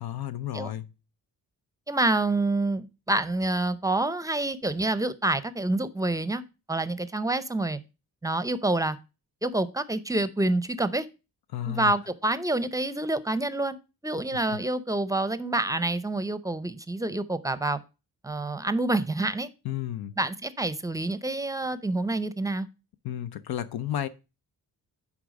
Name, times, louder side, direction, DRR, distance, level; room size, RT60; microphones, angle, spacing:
voice 1, 0.0-0.9 11.5-11.9 14.5-14.6 19.6-20.1 23.0-24.1, left 11 dB, 80° left, 0.6 m, -32 dB
voice 2, 1.9-6.4 6.7-7.8 8.2-9.0 9.4-11.1 11.6-13.8 14.0-17.8 18.2-19.5 20.2-22.7, right 2 dB, 10° right, 0.6 m, -27 dB
9.8 x 3.6 x 5.1 m
cardioid pair, 95°, 37 cm